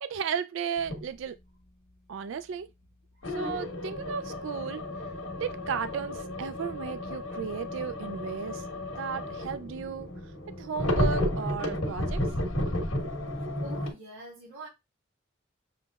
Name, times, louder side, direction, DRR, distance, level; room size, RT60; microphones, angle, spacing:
voice 1, 0.0-1.4 2.1-2.7 3.3-4.8 5.4-8.7 9.0-10.1 10.6-12.2, right 6 dB, 65° right, 0.3 m, -34 dB
sound 1, 0.8-1.0 3.2-13.9, left 1 dB, 85° left, 1.3 m, -32 dB
voice 2, 13.6-14.7, equal, 85° right, 2.7 m, -44 dB
6.9 x 3.0 x 2.3 m
head